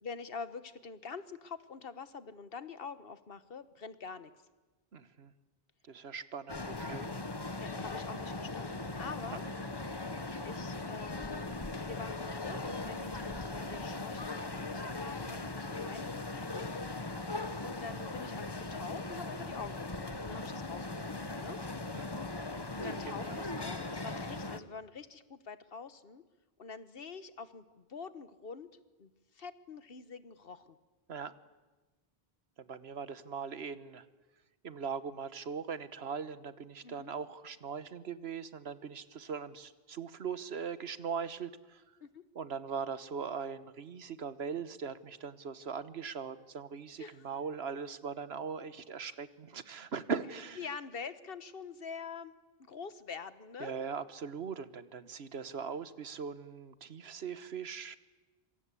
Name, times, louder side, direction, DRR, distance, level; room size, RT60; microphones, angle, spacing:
voice 1, 0.0-4.3 7.6-9.4 10.4-16.7 17.6-21.6 22.8-26.2 26.6-28.7 29.0-30.8 36.8-37.1 42.0-42.2 47.0-47.2 50.6-52.3 52.6-53.8, left 5 dB, 65° left, 13 dB, 1.4 m, -46 dB
voice 2, 4.9-5.3 5.8-7.1 9.3-9.5 17.3-17.7 21.6-22.2 22.8-23.5 31.1-31.3 32.6-34.1 34.6-42.0 42.3-50.7 53.6-58.0, right 6 dB, 85° right, 14 dB, 1.4 m, -40 dB
sound 1, 6.5-24.6, left 2 dB, 25° left, 1.1 m, -39 dB
26.5 x 24.0 x 8.4 m, 1.2 s
omnidirectional pair, 1.0 m